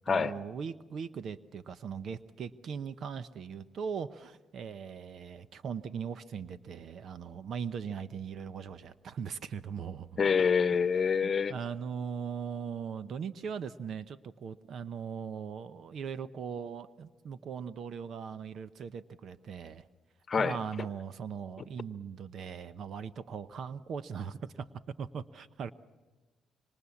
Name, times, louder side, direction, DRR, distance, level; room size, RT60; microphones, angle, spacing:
voice 1, 0.1-10.1 11.2-19.9 20.4-24.7 25.0-25.7, right 6 dB, 60° right, 0.8 m, -39 dB
voice 2, 10.2-11.5 20.3-20.6, left 6 dB, 40° left, 1.1 m, -26 dB
26.0 x 25.0 x 7.2 m
cardioid pair, 85°, 0 cm